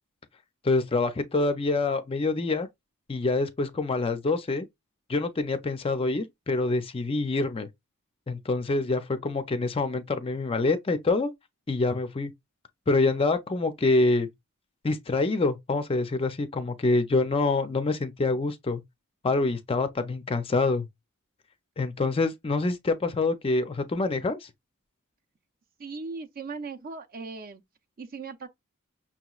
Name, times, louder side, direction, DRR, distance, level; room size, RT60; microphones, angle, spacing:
voice 1, 0.6-2.7 3.1-4.7 5.1-7.7 8.3-11.3 11.7-12.3 12.9-14.3 14.8-18.8 19.2-20.9 21.8-24.5, left 3 dB, 25° left, 0.4 m, -26 dB
voice 2, 25.8-27.6 28.0-28.5, right 4 dB, 40° right, 0.6 m, -38 dB
5.9 x 2.9 x 2.3 m
head